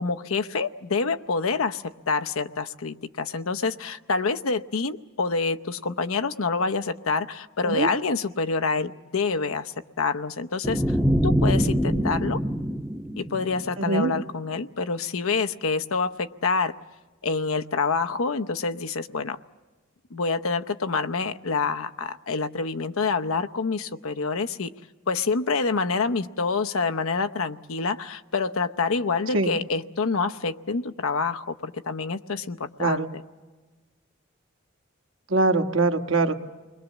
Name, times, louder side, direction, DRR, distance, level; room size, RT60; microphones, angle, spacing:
voice 1, 0.0-11.0 11.2-12.4 13.2-16.7 17.2-19.4 20.1-24.7 25.1-33.1, left 4 dB, 85° left, 9 dB, 0.8 m, -27 dB
sound 1, 10.6-13.9, equal, ahead, 0.7 m, -24 dB
voice 2, 13.8-14.1 29.3-29.5 32.8-33.1 35.3-36.3, right 3 dB, 65° right, 6 dB, 1.4 m, -22 dB
29.5 x 21.5 x 7.3 m, 1.3 s
head